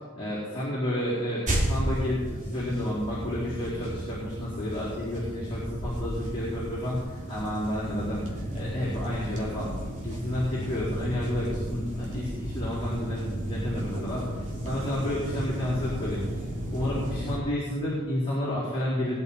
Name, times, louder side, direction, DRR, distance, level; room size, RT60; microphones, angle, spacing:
voice 1, 0.2-9.8 10.0-16.3 16.7-19.2, left 1 dB, 25° left, -9 dB, 4.2 m, -31 dB
sound 1, 1.5-17.4, right 1 dB, 35° right, 2.8 m, -33 dB
21.0 x 10.5 x 4.4 m, 1.5 s
head